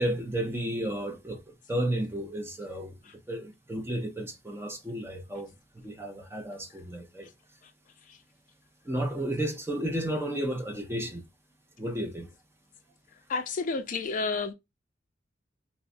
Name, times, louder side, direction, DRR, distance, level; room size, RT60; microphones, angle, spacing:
voice 1, 0.0-3.0 3.3-5.5 5.8-7.3 8.8-11.2 11.8-12.3, right 1 dB, 15° right, 0.5 m, -32 dB
voice 2, 13.3-14.5, left 4 dB, 45° left, 0.4 m, -31 dB
3.8 x 2.0 x 2.5 m
head